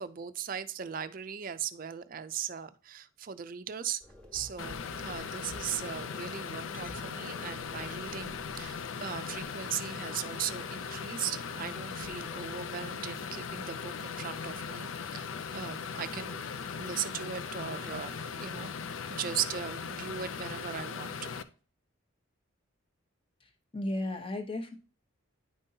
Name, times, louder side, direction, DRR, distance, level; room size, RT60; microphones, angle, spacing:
voice 1, 0.0-4.0 4.3-15.3 15.5-16.4 16.8-18.7 19.1-21.3, right 8 dB, 40° right, 12 dB, 0.4 m, -38 dB
sound 1, 4.0-9.4, equal, 5° left, 1.3 m, -52 dB
sound 2, 4.6-21.4, left 6 dB, 75° left, 0.5 m, -39 dB
voice 2, 23.4-24.8, left 1 dB, 25° left, 6 dB, 0.9 m, -35 dB
10.0 x 5.3 x 2.7 m, 0.37 s
head